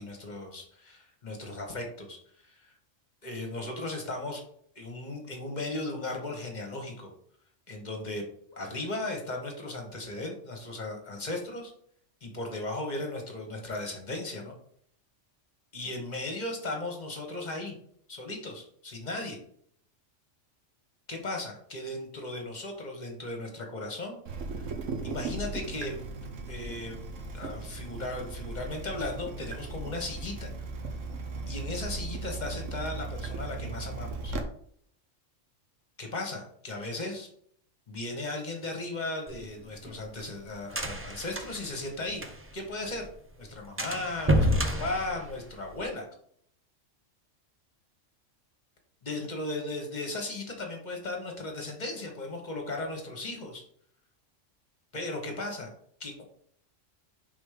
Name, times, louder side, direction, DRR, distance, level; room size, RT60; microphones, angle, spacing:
voice 1, 0.0-2.7 3.2-4.4 4.7-7.1 7.7-8.2 8.5-11.7 12.2-14.5 15.7-17.7 18.1-19.4 21.1-24.2 24.5-24.7 25.0-26.0 26.5-27.1 27.3-30.9 31.5-34.4 36.0-37.3 37.9-42.2 42.5-43.1 43.4-46.0 49.0-53.6 54.9-55.7 56.0-56.2, left 2 dB, 35° left, 2 dB, 1.3 m, -36 dB
Water tap faucet / Drip, 24.2-34.4, right 3 dB, 75° right, 1.2 m, -37 dB
sound 1, 39.3-42.7 43.0-43.1 43.4-43.5 43.8-45.8, equal, 15° right, 0.4 m, -29 dB
5.2 x 3.9 x 5.0 m, 0.64 s
omnidirectional pair, 1.3 m